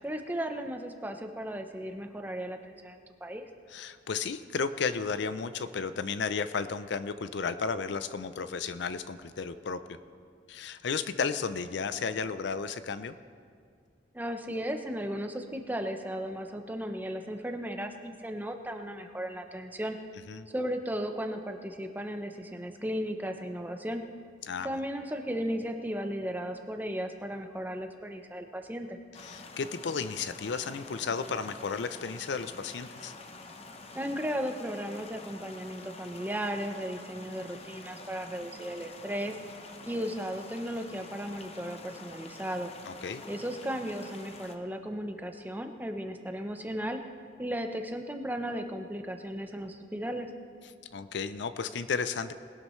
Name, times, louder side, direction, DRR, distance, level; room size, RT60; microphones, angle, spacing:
voice 1, 0.0-3.4 14.1-20.0 20.5-24.0 24.6-29.0 33.9-39.4 39.9-42.7 43.3-47.0 47.4-50.3, equal, 10° right, 5 dB, 0.7 m, -35 dB
voice 2, 3.7-10.0 10.5-13.2 20.3-20.5 24.5-24.7 29.2-33.1 42.9-43.2 50.9-52.3, left 5 dB, 65° left, 12 dB, 0.5 m, -33 dB
sound 1, 29.1-44.5, left 3 dB, 35° left, 0.8 m, -47 dB
20.0 x 12.0 x 3.1 m, 2.1 s
head